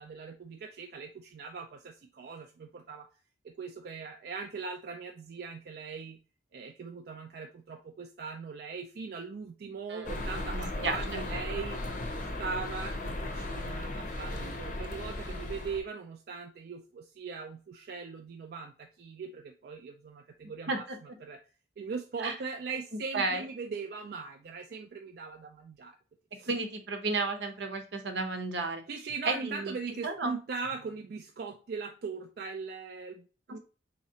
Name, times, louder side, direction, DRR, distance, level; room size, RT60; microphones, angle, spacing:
voice 1, 0.0-3.1 3.4-6.2 6.5-11.8 12.4-21.4 21.8-26.0 26.3-26.5 28.9-33.6, right 5 dB, 60° right, 5 dB, 0.3 m, -40 dB
voice 2, 9.9-10.2 10.5-11.2 20.7-21.0 22.2-22.3 23.1-23.5 26.5-28.8 29.2-29.7 30.0-30.3 33.5-33.6, right 3 dB, 85° right, 6 dB, 0.8 m, -33 dB
sound 1, 10.0-15.8, left 1 dB, 45° left, 0.6 m, -36 dB
4.0 x 2.8 x 2.7 m, 0.35 s
head